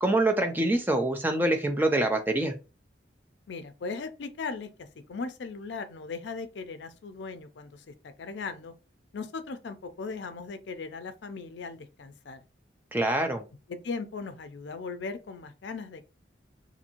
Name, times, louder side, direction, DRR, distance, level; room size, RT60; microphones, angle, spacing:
voice 1, 0.0-2.5 12.9-13.5, right 1 dB, 10° right, 0.3 m, -25 dB
voice 2, 3.5-4.7 5.1-7.8 8.2-8.7 9.1-12.4 13.7-16.0, left 4 dB, 65° left, 0.4 m, -38 dB
2.6 x 2.5 x 2.9 m
head